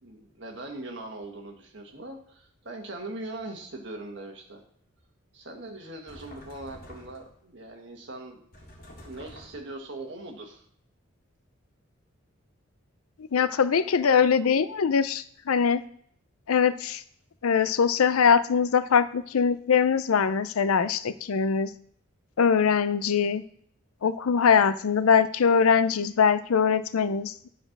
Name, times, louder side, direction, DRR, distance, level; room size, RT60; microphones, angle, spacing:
voice 1, 0.0-4.6 5.3-8.4 9.1-10.6, right 2 dB, 55° right, 2 dB, 1.7 m, -40 dB
sound 1, 6.1-7.4 8.5-9.8, equal, 45° left, 2.0 m, -48 dB
voice 2, 13.3-15.8 16.5-17.0 17.4-21.7 22.4-23.4 24.0-27.5, left 6 dB, 90° left, 15 dB, 0.5 m, -22 dB
10.0 x 4.3 x 6.0 m, 0.64 s
head